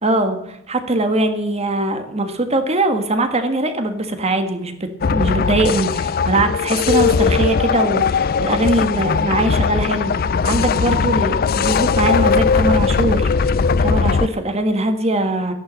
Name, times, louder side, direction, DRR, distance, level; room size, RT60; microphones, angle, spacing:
voice 1, 0.0-10.1 10.4-13.5 13.8-15.5, right 2 dB, 30° right, 7 dB, 1.6 m, -21 dB
sound 1, 5.0-14.3, left 5 dB, 50° left, 0.4 m, -18 dB
14.0 x 11.0 x 7.4 m, 0.80 s
head